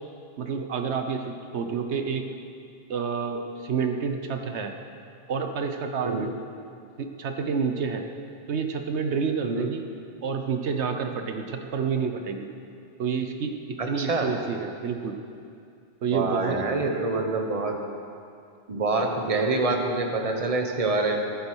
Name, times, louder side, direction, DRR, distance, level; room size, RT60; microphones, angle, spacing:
voice 1, 0.4-2.3 2.9-4.7 5.3-6.3 7.0-8.0 8.5-9.8 10.2-12.5 13.0-15.2 16.0-17.1, right 6 dB, 85° right, 6 dB, 1.2 m, -29 dB
voice 2, 13.8-14.3 16.1-17.7 18.7-21.2, right 3 dB, 35° right, 3 dB, 1.2 m, -26 dB
14.5 x 9.6 x 6.2 m, 2.4 s
omnidirectional pair, 1.1 m